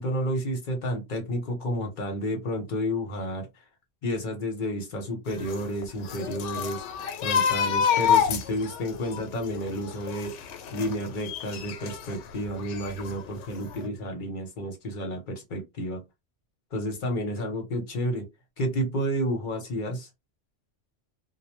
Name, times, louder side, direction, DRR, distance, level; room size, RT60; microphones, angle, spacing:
voice 1, 0.0-3.5 4.0-6.8 7.2-10.3 10.7-16.0 16.7-18.2 18.6-20.1, equal, 45° left, 0.8 m, -31 dB
sound 1, 5.3-12.2 12.6-13.5 13.7-13.9, left 8 dB, 80° left, 0.9 m, -28 dB
2.2 x 2.1 x 2.9 m
omnidirectional pair, 1.2 m